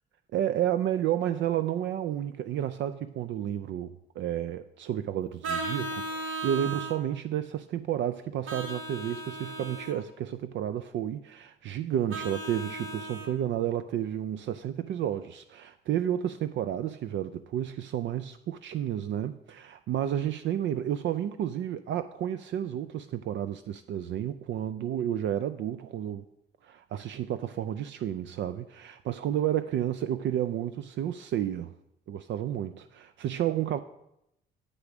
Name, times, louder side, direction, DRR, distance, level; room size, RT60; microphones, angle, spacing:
voice 1, 0.3-26.2 26.6-31.7 32.1-33.8, right 10 dB, 65° right, 0.4 m, -31 dB
Vehicle horn car horn honking, 5.4-7.0 8.5-10.0 12.1-13.3, right 2 dB, 85° right, 1.5 m, -36 dB
8.3 x 5.0 x 6.0 m
cardioid pair, 90°, 20 cm